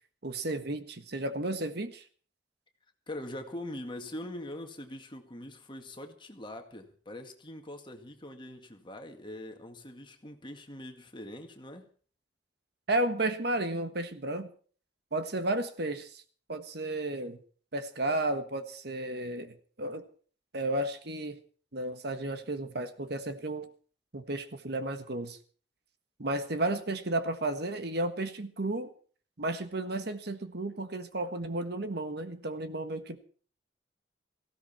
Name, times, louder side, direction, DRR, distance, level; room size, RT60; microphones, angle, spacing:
voice 1, 0.2-2.0 12.9-14.5 15.1-16.2 16.5-17.4 17.7-20.1 20.5-21.4 21.7-23.7 24.1-25.4 26.2-28.9 29.4-33.2, right 2 dB, 60° right, 1.5 m, -33 dB
voice 2, 3.1-11.9, left 1 dB, 25° left, 2.0 m, -43 dB
18.0 x 16.0 x 4.4 m
head